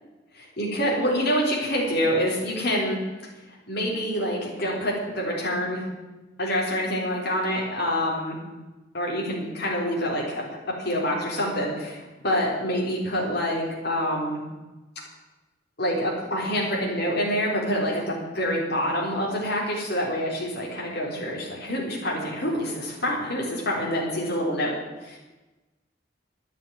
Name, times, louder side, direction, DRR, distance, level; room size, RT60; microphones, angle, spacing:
voice 1, 0.4-3.0 3.7-5.8 6.4-8.4 8.9-10.4 10.8-14.4 15.8-24.7 25.0-25.2, equal, 60° left, -3 dB, 4.0 m, -26 dB
11.5 x 9.1 x 9.5 m, 1.1 s
head